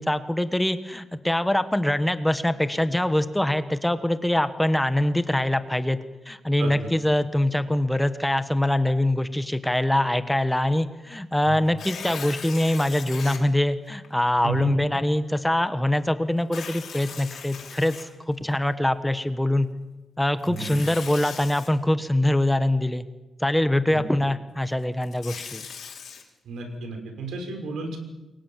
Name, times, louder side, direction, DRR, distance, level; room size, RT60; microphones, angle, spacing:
voice 1, 0.0-6.0 6.2-19.7 20.2-23.0 23.4-25.6, left 1 dB, 5° left, 10 dB, 1.3 m, -23 dB
voice 2, 6.6-6.9 11.4-11.6 14.4-14.7 20.4-20.7 23.9-24.0 26.4-28.0, right 3 dB, 80° right, 4 dB, 6.2 m, -33 dB
Tearing, 11.7-13.4 14.0-14.1 16.4-18.5 20.4-21.7 24.8-26.2, left 7 dB, 60° left, 5.5 m, -39 dB
29.0 x 23.5 x 7.5 m, 1.1 s
cardioid pair, 135°, 0 cm